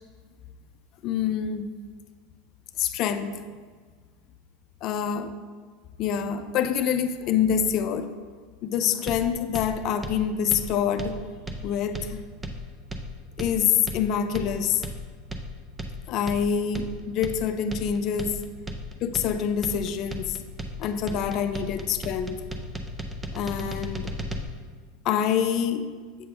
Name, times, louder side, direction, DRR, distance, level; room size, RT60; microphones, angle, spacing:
voice 1, 1.0-1.7 2.8-3.4 4.8-5.3 6.0-8.1 8.6-11.2 11.6-12.2 13.4-14.8 16.1-18.4 19.0-20.4 20.8-22.4 23.3-24.1 25.0-25.8, left 8 dB, 50° left, 9 dB, 0.4 m, -26 dB
sound 1, 9.1-24.4, equal, 10° right, 0.6 m, -35 dB
7.7 x 3.3 x 5.8 m, 1.6 s
supercardioid pair, 120°, 0 cm